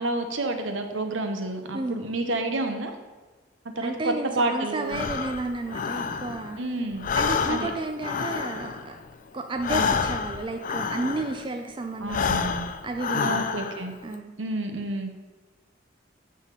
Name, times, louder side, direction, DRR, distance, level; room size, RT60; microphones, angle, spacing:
voice 1, 0.0-2.9 3.8-5.0 6.6-7.0 7.5-7.7 9.7-9.9 12.0-12.7 13.2-13.9 14.4-15.1, right 2 dB, 70° right, 5 dB, 1.0 m, -29 dB
voice 2, 1.7-2.1 3.8-6.6 7.2-9.0 9.3-12.4 12.8-13.6 14.0-14.3, right 2 dB, 25° right, 5 dB, 0.4 m, -32 dB
Breathing, 4.9-6.6 6.9-11.5 12.0-13.9, left 6 dB, 40° left, 0.4 m, -29 dB
8.4 x 5.7 x 4.8 m, 1.3 s
head